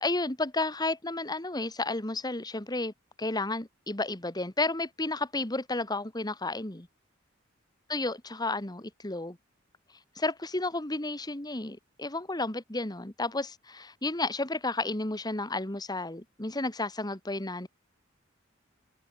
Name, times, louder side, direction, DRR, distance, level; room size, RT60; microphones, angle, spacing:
voice 1, 0.0-6.9 7.9-9.4 10.2-17.7, left 2 dB, 20° left, 2.0 m, -32 dB
head